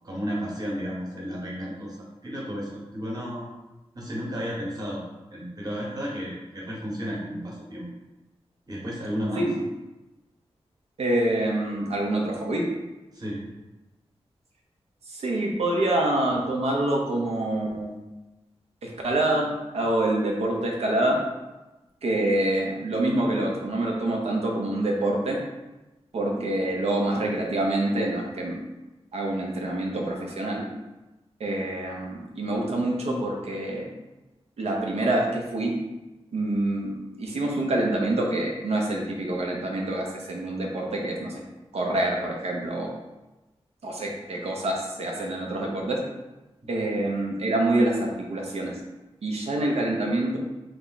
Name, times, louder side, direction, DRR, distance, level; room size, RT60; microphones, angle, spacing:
voice 1, 0.0-2.0 2.2-3.5 3.9-5.0 5.3-7.9 8.7-9.5 13.1-13.4, equal, 40° right, -4 dB, 1.2 m, -32 dB
voice 2, 11.0-12.7 15.1-18.0 18.8-21.2 22.0-25.4 26.1-28.6 29.1-30.6 31.4-33.8 34.6-35.7 36.3-41.3 41.7-42.9 43.8-46.0 46.7-48.7 49.2-50.4, right 1 dB, 80° right, -1 dB, 0.9 m, -26 dB
3.5 x 3.4 x 4.1 m, 1.1 s
wide cardioid pair, 135°, 10 cm